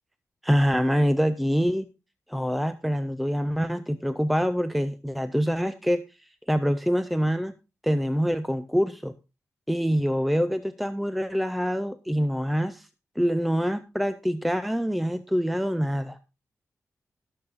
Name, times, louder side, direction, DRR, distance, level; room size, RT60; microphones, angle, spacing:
voice 1, 0.4-1.8 2.3-6.0 6.5-7.5 7.8-9.1 9.7-12.9 13.2-16.2, equal, ahead, 11 dB, 0.4 m, -25 dB
21.0 x 7.0 x 2.4 m, 0.28 s
wide cardioid pair, 170°, 6 cm